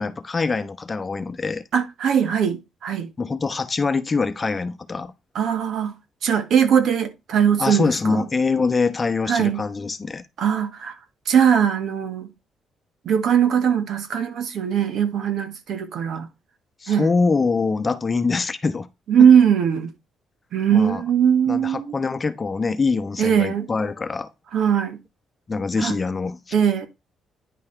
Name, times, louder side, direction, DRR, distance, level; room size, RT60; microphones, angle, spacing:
voice 1, 0.0-1.6 3.2-5.1 7.6-10.2 16.8-18.9 20.7-21.0 21.5-24.3 25.5-26.4, left 4 dB, 30° left, 1.0 m, -24 dB
voice 2, 1.7-3.1 5.3-5.9 6.2-8.2 9.3-9.6 10.4-11.0 11.2-12.3 13.0-16.3 16.9-17.1 19.1-19.9 20.5-21.9 23.2-23.7 24.5-25.0 25.8-26.0 26.5-26.9, right 8 dB, 70° right, 1.4 m, -20 dB
10.0 x 5.5 x 3.3 m
cardioid pair, 90°, 0 cm